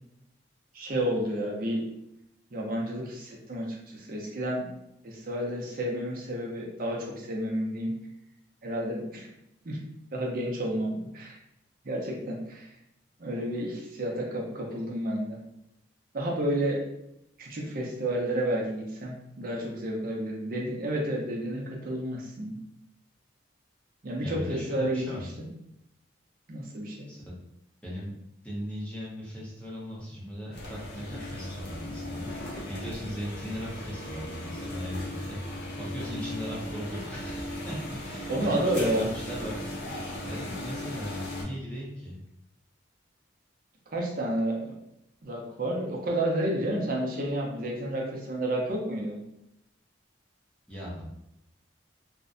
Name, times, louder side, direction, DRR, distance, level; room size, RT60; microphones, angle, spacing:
voice 1, 0.7-1.8 2.5-4.7 5.0-7.9 8.6-9.3 9.6-9.8 10.1-11.4 11.8-12.7 13.2-15.4 16.1-16.8 17.4-22.6 24.0-25.5 26.5-27.1 38.3-39.1 43.9-44.7 45.2-49.1, right 1 dB, 45° right, -1 dB, 0.5 m, -30 dB
voice 2, 24.2-25.4 27.1-27.3 27.8-28.1 28.4-35.4 35.8-37.8 38.0-39.9 40.2-42.2 50.7-51.1, equal, 5° left, -7 dB, 0.6 m, -38 dB
sound 1, 30.5-41.4, left 1 dB, 55° left, 0.6 m, -37 dB
2.5 x 2.1 x 2.5 m, 0.83 s
head